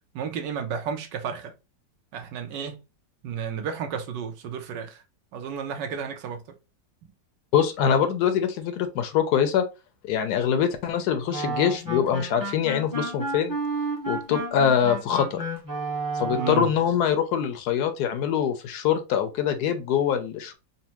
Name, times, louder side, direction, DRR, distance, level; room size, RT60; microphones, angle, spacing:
voice 1, 0.1-1.5 2.1-2.8 3.2-5.0 5.3-6.4 16.3-16.7, right 7 dB, 75° right, 1.3 m, -32 dB
voice 2, 7.5-9.7 10.0-13.6 14.1-15.4 16.1-20.5, left 8 dB, 70° left, 1.0 m, -24 dB
sound 1, 11.3-16.8, right 2 dB, 15° right, 0.7 m, -31 dB
4.1 x 2.1 x 2.8 m
omnidirectional pair, 2.0 m